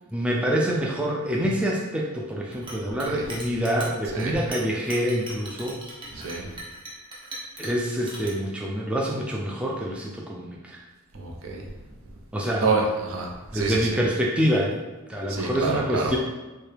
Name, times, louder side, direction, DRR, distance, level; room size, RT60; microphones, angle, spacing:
voice 1, 0.1-5.8 7.6-10.8 12.3-12.7 13.5-14.8 15.1-16.2, equal, 5° right, -3 dB, 0.3 m, -26 dB
Chink clink, 2.5-8.3, right 1 dB, 25° right, 0.8 m, -39 dB
voice 2, 2.8-3.3 4.1-4.4 6.1-6.5 11.1-11.7 12.1-12.2 12.6-14.0 15.3-16.1, right 3 dB, 70° right, 0 dB, 0.7 m, -28 dB
4.5 x 2.3 x 3.3 m, 1.1 s
head